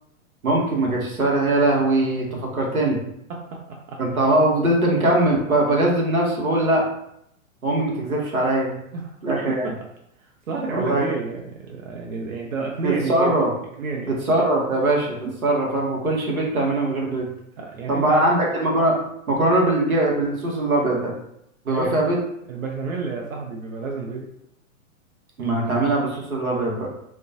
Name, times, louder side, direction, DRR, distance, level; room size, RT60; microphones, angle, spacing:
voice 1, 0.4-3.0 4.0-6.8 7.6-8.7 9.2-9.7 10.7-11.1 12.8-13.5 14.1-17.3 17.9-18.9 19.3-21.1 21.6-22.2 25.4-26.9, right 1 dB, 90° right, -2 dB, 0.8 m, -21 dB
voice 2, 3.3-4.0 8.9-9.7 10.2-13.5 13.8-14.2 17.6-18.3 21.7-22.0 22.5-24.3, right 4 dB, 70° right, -1 dB, 0.5 m, -30 dB
2.4 x 2.1 x 2.5 m, 0.77 s
figure-of-eight pair, 110°, 42 cm